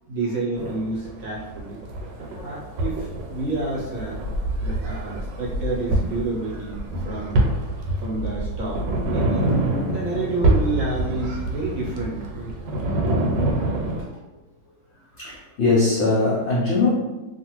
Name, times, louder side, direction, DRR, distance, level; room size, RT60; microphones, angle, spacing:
voice 1, 0.1-1.8 2.2-4.2 4.6-7.4 8.0-12.5 14.0-14.1, right 2 dB, 60° right, -6 dB, 0.9 m, -29 dB
sound 1, 0.5-14.0, right 1 dB, 80° right, 1.2 m, -26 dB
voice 2, 2.0-2.6 9.5-10.0 15.2-16.9, left 3 dB, 80° left, -6 dB, 0.6 m, -22 dB
2.7 x 2.4 x 2.9 m, 1.1 s
omnidirectional pair, 1.9 m